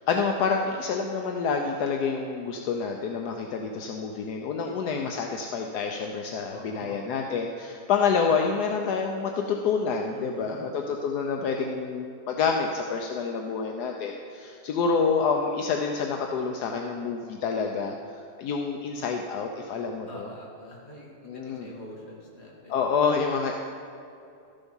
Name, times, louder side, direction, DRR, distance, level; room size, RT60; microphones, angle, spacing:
voice 1, 0.1-20.3 21.2-21.7 22.7-23.5, left 5 dB, 75° left, 2 dB, 1.2 m, -28 dB
voice 2, 6.5-7.0 10.1-10.7 20.1-22.8, equal, 40° left, -3 dB, 2.2 m, -44 dB
13.0 x 7.0 x 5.5 m, 2.5 s
omnidirectional pair, 1.8 m